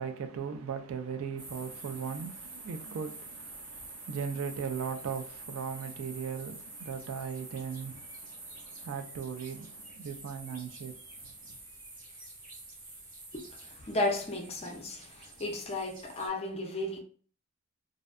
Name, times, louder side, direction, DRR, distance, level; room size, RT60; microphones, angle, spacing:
voice 1, 0.0-11.6, right 6 dB, 65° right, 0.3 m, -38 dB
sound 1, 1.4-16.3, right 2 dB, 35° right, 0.8 m, -48 dB
voice 2, 13.3-17.0, left 2 dB, 25° left, 0.4 m, -34 dB
2.6 x 2.1 x 2.4 m
head